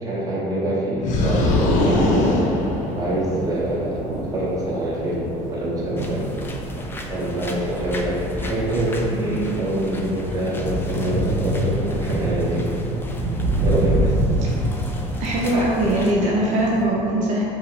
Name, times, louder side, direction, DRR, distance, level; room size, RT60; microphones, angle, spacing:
voice 1, 0.0-2.3 3.0-4.0 4.3-6.3 7.1-12.8 13.6-14.1, right 1 dB, 25° right, -6 dB, 1.1 m, -25 dB
sound 1, 1.0-3.5, left 2 dB, 60° left, 0.6 m, -21 dB
sound 2, 1.2-16.9, right 1 dB, 80° right, 0.9 m, -27 dB
sound 3, 6.0-16.1, left 1 dB, 15° left, 0.3 m, -35 dB
voice 2, 15.2-17.4, right 1 dB, 60° right, -4 dB, 0.6 m, -21 dB
5.4 x 2.0 x 4.6 m, 2.8 s
cardioid pair, 135°, 14 cm